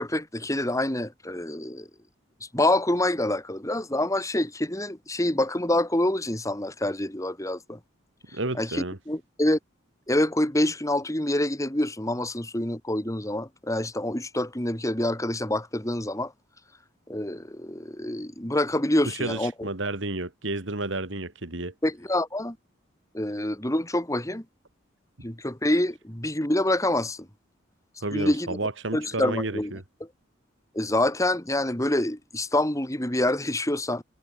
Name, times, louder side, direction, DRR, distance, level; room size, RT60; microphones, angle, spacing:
voice 1, 0.0-1.9 2.5-7.8 8.5-9.6 10.1-16.3 17.1-19.7 21.8-22.6 23.1-24.4 25.2-27.3 28.1-28.6 28.9-29.7 30.7-34.0, left 1 dB, 15° left, 2.5 m, -26 dB
voice 2, 8.3-9.0 19.0-21.7 28.0-29.8, right 2 dB, 65° right, 2.4 m, -31 dB
head